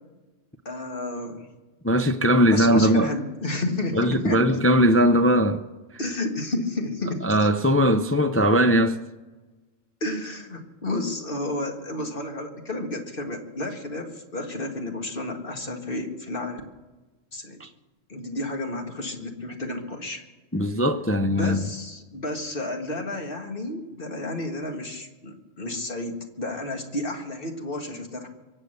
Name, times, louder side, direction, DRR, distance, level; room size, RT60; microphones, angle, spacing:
voice 1, 0.7-1.5 2.5-4.5 6.0-7.5 10.0-16.6 17.3-17.6 18.1-20.2 21.3-28.3, left 2 dB, 45° left, 1.9 m, -31 dB
voice 2, 1.8-3.1 3.9-5.6 7.2-9.0 17.6-17.7 20.5-21.6, equal, 20° left, 0.3 m, -20 dB
23.5 x 8.2 x 6.6 m
omnidirectional pair, 1.4 m